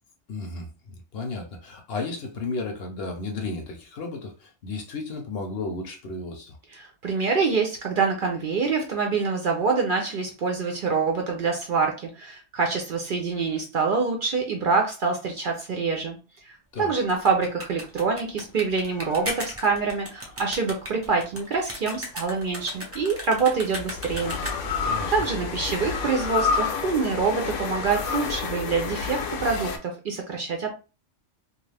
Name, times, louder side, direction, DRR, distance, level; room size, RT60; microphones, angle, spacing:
voice 1, 0.3-0.7 1.1-6.6 16.7-16.9 24.8-25.1, left 3 dB, 60° left, 0.8 m, -33 dB
voice 2, 6.7-16.2 16.4-24.4 25.1-30.7, right 4 dB, 55° right, 0.6 m, -26 dB
sound 1, 17.1-24.8, equal, 15° right, 0.5 m, -37 dB
sound 2, 18.9-20.4 22.2-29.8, left 5 dB, 90° left, 1.0 m, -30 dB
2.4 x 2.4 x 3.2 m
omnidirectional pair, 1.2 m